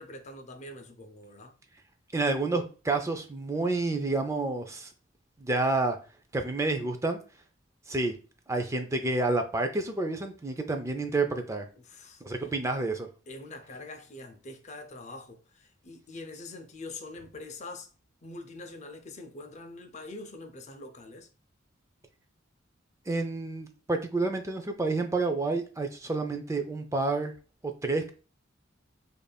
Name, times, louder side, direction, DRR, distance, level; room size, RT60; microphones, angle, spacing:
voice 1, 0.0-1.5 11.8-12.2 13.3-17.9 18.2-21.3, left 2 dB, 35° left, 0.5 m, -44 dB
voice 2, 2.1-4.9 5.4-6.0 6.3-7.2 7.9-8.1 8.5-11.7 12.2-13.1 23.1-27.3 27.6-28.1, right 3 dB, 15° right, 0.4 m, -29 dB
5.1 x 2.5 x 2.2 m
head